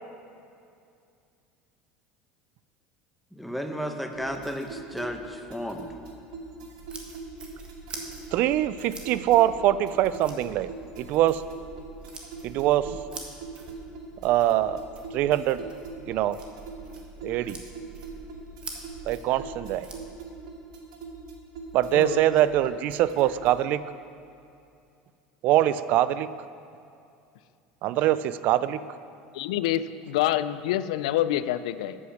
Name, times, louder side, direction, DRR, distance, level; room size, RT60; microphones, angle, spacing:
voice 1, 3.3-5.9, equal, ahead, 4 dB, 0.8 m, -33 dB
sound 1, 4.1-23.7, right 3 dB, 90° right, 1.4 m, -43 dB
sound 2, 6.8-20.0, right 4 dB, 30° right, 1.5 m, -45 dB
voice 2, 8.3-10.7 11.0-11.4 12.4-13.0 14.2-14.8 15.1-15.6 16.1-16.4 17.2-17.6 19.1-19.9 21.7-23.8 25.4-26.3 27.8-28.8, right 13 dB, 55° right, 15 dB, 0.3 m, -23 dB
voice 3, 29.3-32.0, left 13 dB, 90° left, 14 dB, 0.4 m, -27 dB
8.5 x 7.9 x 6.4 m, 2.5 s
supercardioid pair, 125°, 3 cm